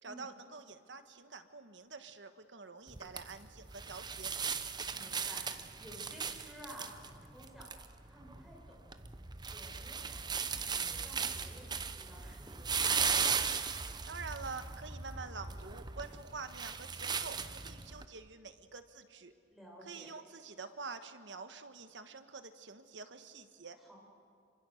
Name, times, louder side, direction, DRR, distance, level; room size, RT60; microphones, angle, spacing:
voice 1, 0.0-4.3 14.1-17.4 17.6-19.3 19.8-23.8, right 4 dB, 90° right, 9 dB, 1.4 m, -47 dB
sound 1, 2.9-18.0, right 6 dB, 25° right, 0.8 m, -38 dB
voice 2, 4.9-7.7 8.0-9.0 9.5-13.3 19.5-20.1 23.8-24.0, equal, ahead, -3 dB, 6.5 m, -54 dB
27.0 x 25.5 x 6.5 m, 2.3 s
head